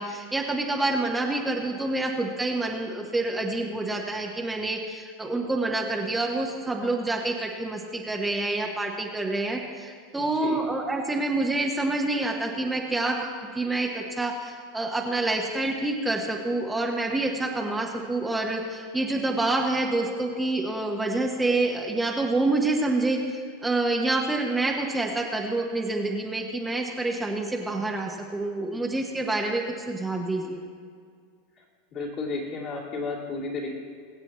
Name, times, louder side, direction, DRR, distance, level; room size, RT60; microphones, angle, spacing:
voice 1, 0.0-13.3 13.5-30.6, right 2 dB, 10° right, 0 dB, 1.3 m, -27 dB
voice 2, 10.2-10.6 31.9-33.7, left 3 dB, 45° left, -3 dB, 3.1 m, -33 dB
23.0 x 7.7 x 3.1 m, 2.1 s
hypercardioid pair, 100°, 0 cm